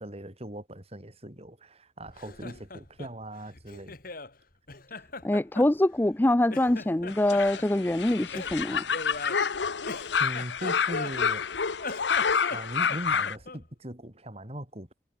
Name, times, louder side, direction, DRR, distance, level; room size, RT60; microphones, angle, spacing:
voice 1, 0.0-4.0 10.2-11.6 12.5-14.9, right 1 dB, 35° right, 4.8 m, -39 dB
Laughter, 2.0-4.3 4.7-6.2 6.5-7.7 8.3-11.4 11.7-13.7, left 3 dB, 55° left, 3.8 m, -40 dB
voice 2, 5.2-8.8, left 1 dB, 10° left, 0.5 m, -24 dB
sound 1, 7.1-13.4, left 6 dB, 85° left, 0.9 m, -28 dB
head